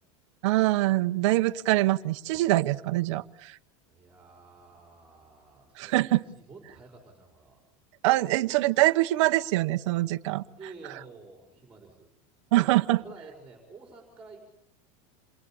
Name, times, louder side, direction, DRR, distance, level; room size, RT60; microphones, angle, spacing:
voice 1, 0.4-3.6 5.8-6.2 8.0-10.4 12.5-13.0, right 17 dB, 60° right, 8 dB, 1.1 m, -24 dB
voice 2, 3.9-7.6 10.6-12.1 12.6-12.7 13.0-14.4, right 4 dB, 5° right, 1 dB, 4.9 m, -50 dB
28.5 x 22.0 x 8.8 m, 0.75 s
supercardioid pair, 175°, 17 cm